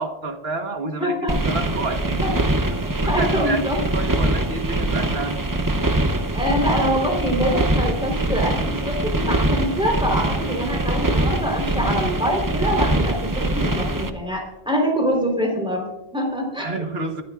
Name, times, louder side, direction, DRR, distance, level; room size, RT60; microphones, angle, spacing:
voice 1, 0.0-5.4 16.6-17.2, right 3 dB, 70° right, 5 dB, 1.6 m, -30 dB
voice 2, 1.0-1.5 2.2-2.3 2.8-3.8 6.3-16.8, equal, 5° right, 0 dB, 3.8 m, -24 dB
sound 1, 1.3-14.1, right 1 dB, 20° right, 0.7 m, -23 dB
23.0 x 12.5 x 2.5 m, 0.91 s
omnidirectional pair, 1.0 m